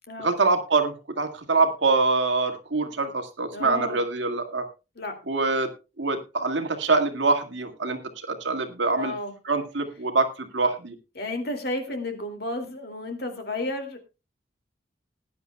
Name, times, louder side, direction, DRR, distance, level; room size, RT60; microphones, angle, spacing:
voice 1, 0.2-4.7 5.3-5.7 6.0-9.1 9.5-11.0, right 3 dB, 75° right, 5 dB, 2.0 m, -24 dB
voice 2, 3.5-4.0 5.0-5.1 9.0-9.3 11.2-14.0, left 1 dB, 55° left, 4 dB, 2.5 m, -32 dB
19.5 x 10.0 x 2.3 m, 0.28 s
head